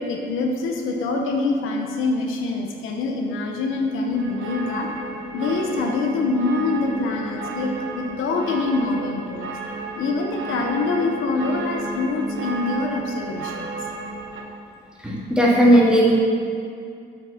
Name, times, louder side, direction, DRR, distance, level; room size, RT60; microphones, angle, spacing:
voice 1, 0.0-4.9 5.3-9.5 10.0-13.8, left 3 dB, 90° left, 2 dB, 1.0 m, -25 dB
sound 1, 4.1-14.4, right 3 dB, 80° right, 1.1 m, -33 dB
voice 2, 15.0-16.1, equal, 5° right, -5 dB, 2.2 m, -16 dB
7.3 x 6.3 x 5.7 m, 2.3 s
cardioid pair, 90°, 20 cm